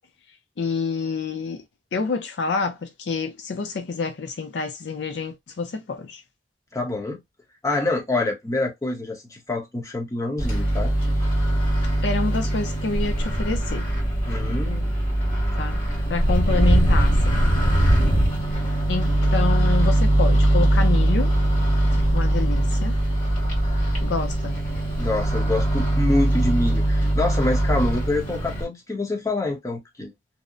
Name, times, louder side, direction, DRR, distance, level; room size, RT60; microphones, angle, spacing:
voice 1, 0.6-1.6 1.9-6.2 12.0-13.9 15.6-15.8 16.1-17.4 18.9-21.3 21.9-23.0 24.0-24.6, left 4 dB, 70° left, 0.5 m, -28 dB
voice 2, 6.7-7.2 7.6-10.9 14.3-15.0 25.0-30.1, left 2 dB, 20° left, 0.8 m, -26 dB
Microwave oven, 10.4-28.6, right 1 dB, 50° left, 1.6 m, -21 dB
2.7 x 2.0 x 2.4 m
head